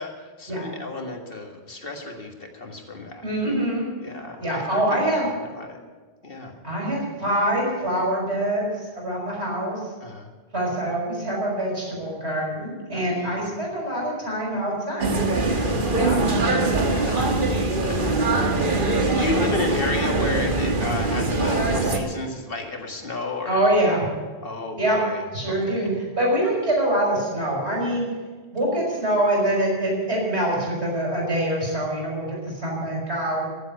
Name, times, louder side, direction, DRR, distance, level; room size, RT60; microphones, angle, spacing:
voice 1, 0.0-3.2 4.0-5.8 6.2-6.6 10.0-10.3 12.9-13.4 15.7-23.6 24.4-25.9, left 2 dB, 60° left, 2 dB, 2.0 m, -33 dB
voice 2, 3.2-3.8 4.4-5.3 6.6-9.9 10.5-15.2 15.9-16.2 23.5-24.0 24.8-25.0 25.3-28.1 28.5-33.4, right 1 dB, 80° right, -3 dB, 6.2 m, -25 dB
sound 1, 15.0-22.0, right 2 dB, 50° right, 1.6 m, -22 dB
15.5 x 8.0 x 9.4 m, 1.4 s
omnidirectional pair, 1.1 m